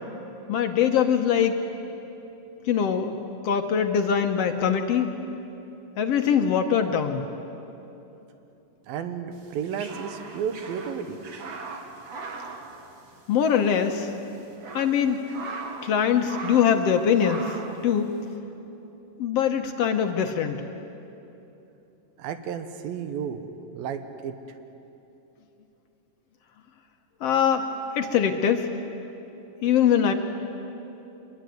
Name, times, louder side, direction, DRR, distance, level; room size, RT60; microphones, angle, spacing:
voice 1, 0.5-1.6 2.7-3.2 3.4-5.1 6.0-7.2 13.3-14.1 14.7-15.2 15.8-17.6 17.8-18.2 19.2-20.6 27.2-27.7 27.9-28.7 29.6-30.1, left 8 dB, 70° left, 6 dB, 1.5 m, -22 dB
voice 2, 8.9-11.2 22.2-23.4 23.7-24.3, right 7 dB, 85° right, 9 dB, 3.0 m, -32 dB
sound 1, 9.4-13.5 13.7-13.9 14.4-16.0 16.2-16.8 17.2-17.8, right 4 dB, 50° right, 2.7 m, -39 dB
25.0 x 22.0 x 9.3 m, 3.0 s
omnidirectional pair, 4.0 m